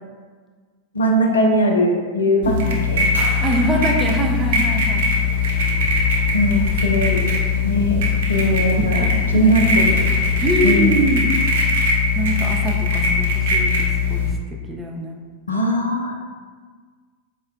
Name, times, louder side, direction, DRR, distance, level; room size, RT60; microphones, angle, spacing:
voice 1, 0.9-3.1 6.3-7.2 7.6-8.0 8.3-9.0 9.3-10.1 10.6-11.0 15.5-16.2, equal, 75° left, 1 dB, 0.4 m, -19 dB
sound 1, 2.4-14.3, left 4 dB, 55° right, 0.6 m, -20 dB
sound 2, 3.1-8.5, equal, 75° right, 0.9 m, -39 dB
voice 2, 3.4-5.1 8.4-9.6 10.4-11.3 12.1-14.3 14.7-15.2, right 1 dB, 10° right, 0 dB, 0.4 m, -24 dB
sound 3, 5.2-10.7, left 2 dB, 40° left, 1.1 m, -33 dB
4.2 x 2.1 x 2.4 m, 1.5 s
figure-of-eight pair, 90°, 0 cm